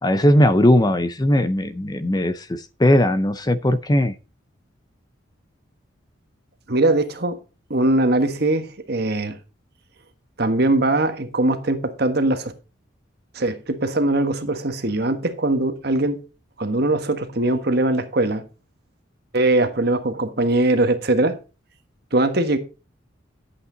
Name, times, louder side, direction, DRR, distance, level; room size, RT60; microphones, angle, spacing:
voice 1, 0.0-4.1, left 1 dB, 20° left, 0.5 m, -18 dB
voice 2, 6.7-7.4 7.7-9.4 10.4-12.5 13.3-16.2 16.6-18.4 19.3-21.4 22.1-22.6, right 2 dB, 50° right, 1.4 m, -21 dB
11.0 x 8.4 x 3.9 m
head